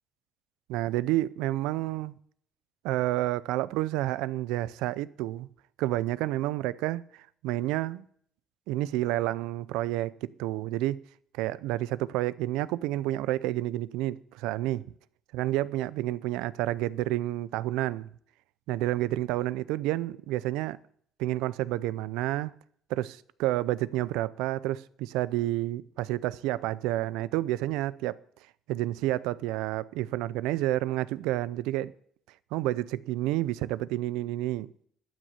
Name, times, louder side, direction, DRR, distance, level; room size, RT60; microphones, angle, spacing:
voice 1, 0.7-2.1 2.8-5.5 5.8-8.1 8.7-11.0 11.3-14.8 15.3-18.1 18.7-20.8 21.2-22.5 22.9-28.2 28.7-31.9 32.5-34.7, right 15 dB, 90° right, 0.5 m, -30 dB
12.0 x 6.3 x 8.3 m
cardioid pair, 90°, 0 cm